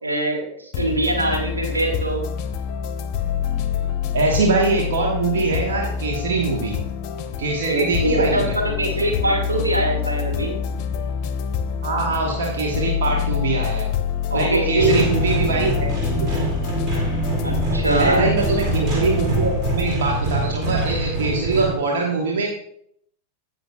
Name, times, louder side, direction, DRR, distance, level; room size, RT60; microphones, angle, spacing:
voice 1, 0.0-2.3 7.7-10.5 14.3-15.0 17.4-18.3, right 1 dB, 80° right, 0 dB, 2.0 m, -22 dB
sound 1, 0.7-19.9, left 8 dB, 40° left, 0.7 m, -26 dB
voice 2, 4.1-6.8 7.4-8.6 11.8-13.9 14.3-16.5 18.0-22.5, right 3 dB, 60° right, -1 dB, 1.3 m, -23 dB
sound 2, 14.8-21.8, right 2 dB, 35° right, 2.4 m, -24 dB
16.0 x 5.8 x 2.3 m, 0.69 s
figure-of-eight pair, 90°, 0 cm